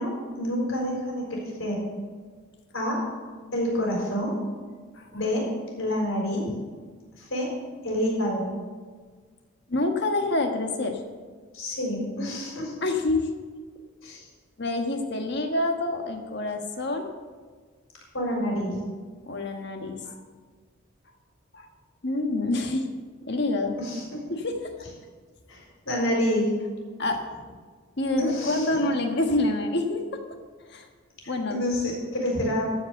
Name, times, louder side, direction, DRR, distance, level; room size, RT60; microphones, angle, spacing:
voice 1, 0.0-1.8 2.7-3.0 3.5-4.3 5.1-5.5 5.8-6.5 7.2-7.5 7.8-8.5 11.5-12.7 14.0-14.3 18.1-18.8 23.8-24.2 25.5-26.5 28.2-28.8 31.2-32.7, left 1 dB, 75° left, -1 dB, 4.3 m, -28 dB
voice 2, 9.7-11.0 12.8-13.3 14.0-14.2 14.6-17.1 19.3-20.1 21.5-21.7 22.0-22.9 23.2-23.8 24.3-24.6 27.0-27.2 28.0-30.2 30.7-30.9 31.3-31.6, left 2 dB, 55° left, 4 dB, 1.3 m, -27 dB
14.0 x 5.2 x 7.8 m, 1.5 s
head